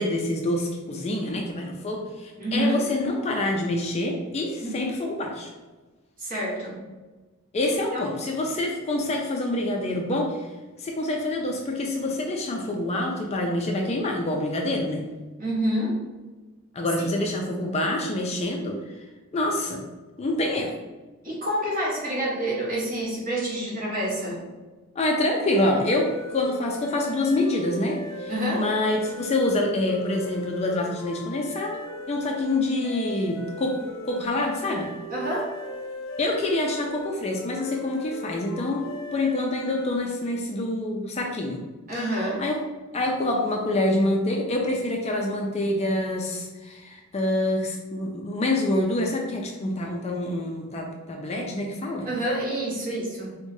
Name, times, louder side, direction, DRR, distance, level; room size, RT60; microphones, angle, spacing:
voice 1, 0.0-5.5 7.5-10.5 10.8-15.1 16.7-19.0 19.3-19.8 20.2-20.7 25.0-34.9 36.2-41.6 42.0-42.6 42.9-52.1, left 1 dB, 30° left, 1 dB, 0.3 m, -26 dB
voice 2, 2.4-2.8 4.6-4.8 6.2-6.8 7.7-8.0 15.4-16.0 17.0-17.1 21.2-24.4 28.3-28.6 35.1-35.5 41.9-42.4 52.0-53.4, right 1 dB, 40° right, -5 dB, 1.1 m, -28 dB
sound 1, 25.3-40.4, left 1 dB, 65° left, 0.6 m, -38 dB
4.6 x 2.1 x 2.7 m, 1.2 s
head